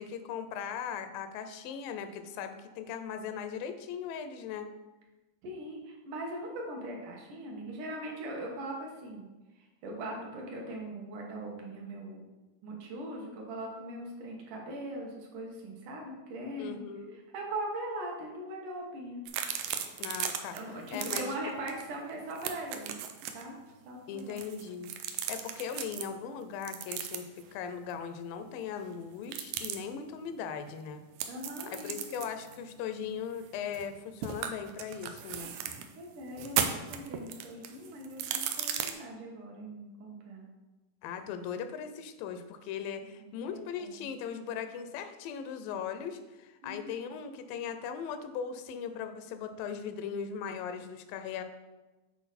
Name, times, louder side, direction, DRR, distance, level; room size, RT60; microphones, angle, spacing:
voice 1, 0.0-4.7 16.6-17.2 20.0-20.6 20.9-21.3 24.1-24.9 25.3-31.0 31.7-35.5 41.0-51.4, left 7 dB, 90° left, 9 dB, 2.3 m, -39 dB
voice 2, 5.4-9.3 9.8-12.2 12.6-16.8 17.3-19.2 20.5-23.0 23.3-23.6 23.9-24.4 29.9-30.1 31.3-32.2 36.0-40.5 43.2-44.1 46.6-47.0, right 1 dB, 70° right, -1 dB, 2.7 m, -40 dB
sound 1, 19.3-20.6 20.9-21.2 21.7-21.8 22.1-23.4 24.2-26.1 26.6-27.4 29.2-29.8 31.2-33.9 34.2-35.9 36.3-38.9, right 9 dB, 85° right, 1.7 m, -36 dB
8.0 x 4.8 x 4.1 m, 1.1 s
omnidirectional pair, 3.9 m